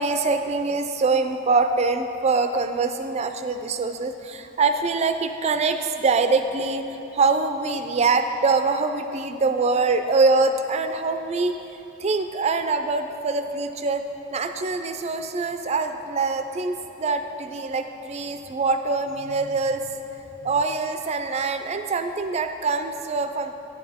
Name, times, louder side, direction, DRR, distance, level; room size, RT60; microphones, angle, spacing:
voice 1, 0.0-6.8 7.1-11.6 12.0-14.0 14.3-20.0 20.4-23.5, right 4 dB, 30° right, 8 dB, 0.4 m, -24 dB
9.4 x 7.1 x 3.5 m, 3.0 s
head